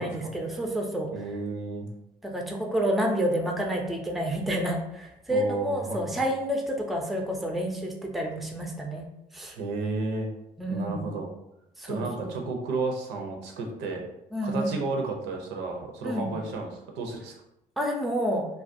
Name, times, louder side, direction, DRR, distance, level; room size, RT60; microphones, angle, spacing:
voice 1, 0.0-1.1 2.2-9.1 9.3-9.6 10.6-11.1 11.8-12.4 14.3-14.8 16.0-16.3 17.8-18.5, equal, ahead, 1 dB, 0.4 m, -29 dB
voice 2, 1.1-1.9 5.3-6.3 9.6-10.3 10.7-11.3 11.9-14.0 14.4-17.3, right 3 dB, 90° right, 2 dB, 0.6 m, -32 dB
2.4 x 2.2 x 2.5 m, 0.84 s
cardioid pair, 110°, 17 cm